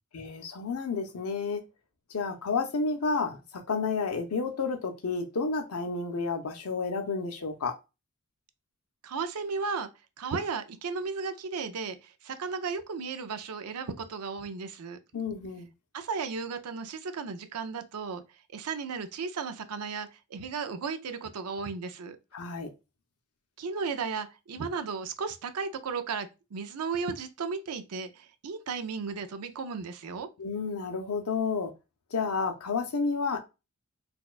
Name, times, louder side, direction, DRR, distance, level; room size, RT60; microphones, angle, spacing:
voice 1, 0.1-1.6 2.1-7.7 15.1-15.7 22.3-22.7 30.4-31.7 32.1-33.4, left 4 dB, 80° left, 0.6 m, -31 dB
voice 2, 9.0-9.9 10.2-15.0 15.9-18.2 18.5-22.2 23.6-30.3, right 5 dB, 90° right, 0.5 m, -35 dB
4.1 x 2.3 x 2.4 m
head